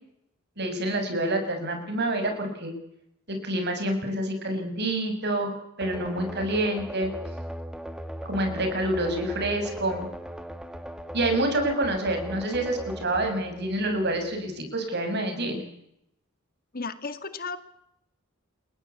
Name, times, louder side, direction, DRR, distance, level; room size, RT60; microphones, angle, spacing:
voice 1, 0.6-2.7 3.3-5.5 5.8-7.1 8.2-10.1 11.1-15.6, right 1 dB, 55° right, 5 dB, 7.2 m, -27 dB
sound 1, 5.8-14.5, equal, 5° right, 1.9 m, -38 dB
voice 2, 16.7-17.6, left 4 dB, 45° left, 11 dB, 2.0 m, -34 dB
29.0 x 22.0 x 8.4 m, 0.78 s
head